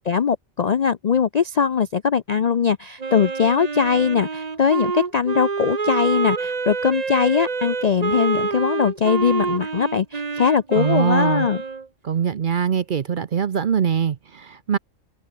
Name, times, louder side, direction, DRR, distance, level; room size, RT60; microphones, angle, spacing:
voice 1, 0.1-11.6, left 6 dB, 55° left, 0.4 m, -21 dB
Wind instrument woodwind instrument, 3.0-11.9, right 4 dB, 35° right, 1.1 m, -27 dB
voice 2, 10.8-11.5 12.0-14.8, right 8 dB, 50° right, 0.7 m, -22 dB
omnidirectional pair, 1.3 m